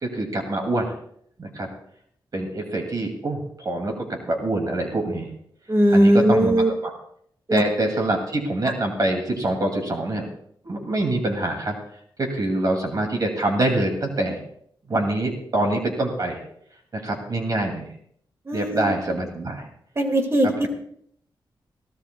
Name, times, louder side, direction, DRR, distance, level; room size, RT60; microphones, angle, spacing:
voice 1, 0.0-0.9 1.4-1.7 2.3-5.3 5.9-6.9 7.5-10.2 10.6-11.8 12.2-14.4 14.9-16.4 16.9-17.9 18.5-19.7 20.4-20.7, right 2 dB, 45° right, 2 dB, 2.3 m, -25 dB
voice 2, 5.7-6.7 7.5-7.6 18.5-18.9 20.0-20.7, right 1 dB, 30° right, 4 dB, 2.0 m, -19 dB
22.0 x 15.5 x 2.3 m, 0.67 s
wide cardioid pair, 95°, 9 cm